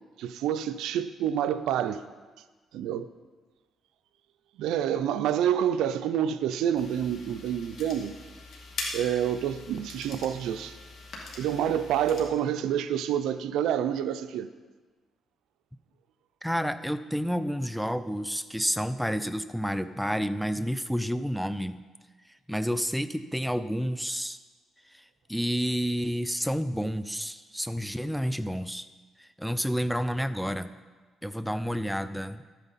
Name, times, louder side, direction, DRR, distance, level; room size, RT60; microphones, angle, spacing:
voice 1, 0.2-2.1 2.7-3.1 4.6-8.2 8.9-10.8 11.4-14.5, right 9 dB, 85° right, 10 dB, 0.5 m, -28 dB
sound 1, 6.8-12.2, left 3 dB, 70° left, 2.2 m, -42 dB
voice 2, 16.4-21.8 22.5-24.4 24.9-28.9 29.2-30.7 31.2-32.4, equal, ahead, 12 dB, 0.5 m, -30 dB
12.5 x 9.0 x 4.1 m, 1.3 s
cardioid pair, 90°, 0 cm